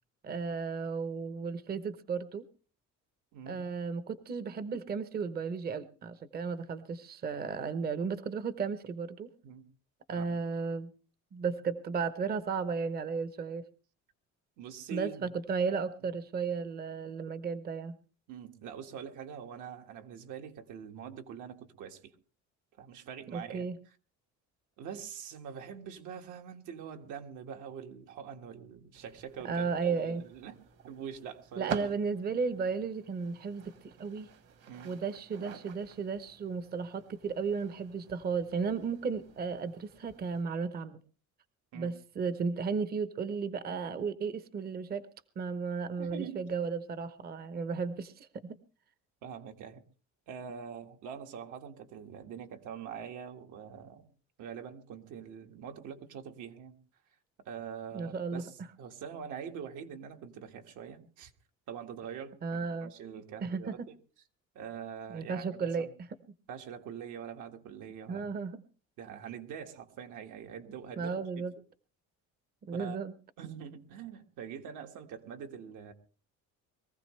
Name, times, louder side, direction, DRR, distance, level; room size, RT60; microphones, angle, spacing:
voice 1, 0.2-2.4 3.5-9.3 10.1-10.9 11.3-13.6 14.9-18.0 23.3-23.8 29.4-30.2 31.6-34.3 34.8-41.0 41.7-45.0 45.4-48.6 57.9-58.4 62.4-62.9 63.4-63.9 65.1-66.1 68.1-68.6 71.0-71.5 72.6-73.1, right 5 dB, 30° right, 13 dB, 0.9 m, -34 dB
voice 2, 14.6-15.3 18.3-22.1 22.8-23.7 24.8-30.6 30.8-31.9 34.7-34.9 41.7-41.9 46.0-46.4 49.2-49.8 50.3-54.0 54.4-56.8 57.4-61.3 61.7-63.8 64.6-65.9 66.5-68.3 69.0-71.5 72.7-73.0 73.4-75.9, right 8 dB, 70° right, 4 dB, 1.9 m, -44 dB
sound 1, 28.9-40.4, right 7 dB, 50° right, 1.7 m, -48 dB
22.5 x 15.0 x 3.2 m, 0.37 s
cardioid pair, 150°, 31 cm